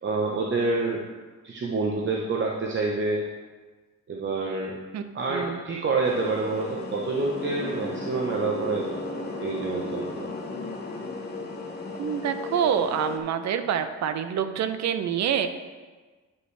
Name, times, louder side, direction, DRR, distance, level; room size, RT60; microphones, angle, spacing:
voice 1, 0.0-1.0 1.4-3.3 4.1-4.8 5.1-10.3, right 3 dB, 40° right, -1 dB, 0.9 m, -28 dB
voice 2, 4.9-5.6 12.0-15.5, right 8 dB, 65° right, 10 dB, 0.6 m, -27 dB
sound 1, 6.0-13.2, left 3 dB, 35° left, 1.2 m, -35 dB
10.0 x 5.3 x 3.3 m, 1.4 s
cardioid pair, 90°, 30 cm